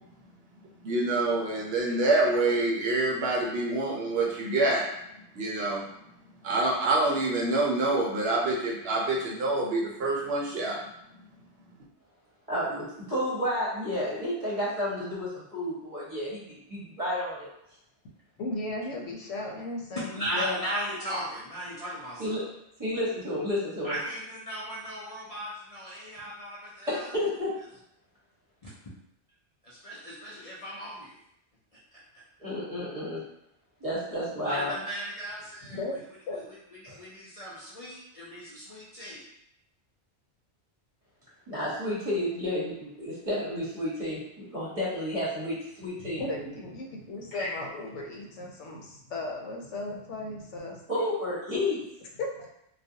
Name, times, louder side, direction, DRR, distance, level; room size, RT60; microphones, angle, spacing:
voice 1, 0.8-4.9 5.3-5.8 6.4-10.8, right 2 dB, 65° right, -3 dB, 0.7 m, -26 dB
voice 2, 12.5-17.5 20.3-20.6 22.2-22.4 22.8-24.0 26.9-27.5 32.4-33.2 33.8-34.7 36.9-37.0 41.5-46.2 47.4-47.5 50.9-51.8, left 1 dB, 35° right, -8 dB, 0.8 m, -31 dB
voice 3, 18.0-20.3 35.7-36.0 36.3-36.4 46.0-50.8 52.2-52.5, left 2 dB, 85° left, 0 dB, 0.9 m, -36 dB
voice 4, 19.9-22.4 23.8-27.1 29.6-31.2 32.1-32.2 34.4-35.8 36.3-36.6 37.0-39.2, right 1 dB, 50° left, -9 dB, 0.4 m, -36 dB
2.4 x 2.1 x 2.6 m, 0.78 s
omnidirectional pair, 1.2 m